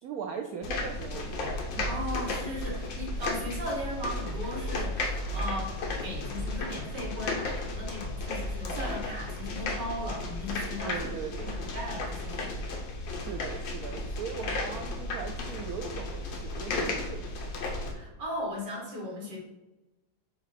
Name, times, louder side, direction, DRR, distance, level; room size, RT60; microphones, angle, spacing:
voice 1, 0.0-1.9 10.8-11.7 13.1-17.4, right 7 dB, 75° right, 5 dB, 0.8 m, -39 dB
sound 1, 0.6-17.9, left 2 dB, 70° left, 1.7 m, -34 dB
voice 2, 1.8-5.7 6.0-11.1 11.4-12.6 17.9-19.4, left 1 dB, 60° right, -1 dB, 2.2 m, -37 dB
6.5 x 3.0 x 5.8 m, 1.0 s
omnidirectional pair, 2.1 m